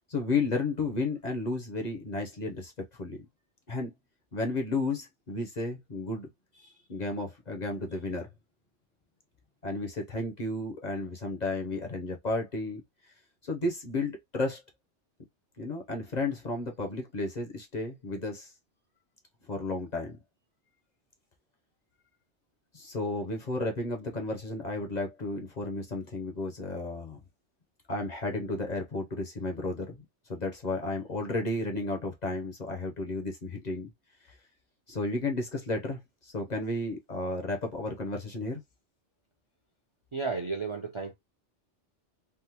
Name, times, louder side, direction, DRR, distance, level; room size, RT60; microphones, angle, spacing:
voice 1, 0.1-3.2 3.7-3.9 4.3-6.3 6.5-8.3 9.6-13.1 13.4-14.6 15.6-18.5 19.5-20.2 22.7-27.2 27.9-30.0 30.3-33.9 34.2-34.4 34.9-38.6, left 2 dB, 45° left, 0.8 m, -33 dB
voice 2, 40.1-41.1, right 4 dB, 40° right, 0.5 m, -33 dB
3.5 x 2.1 x 2.9 m
omnidirectional pair, 1.2 m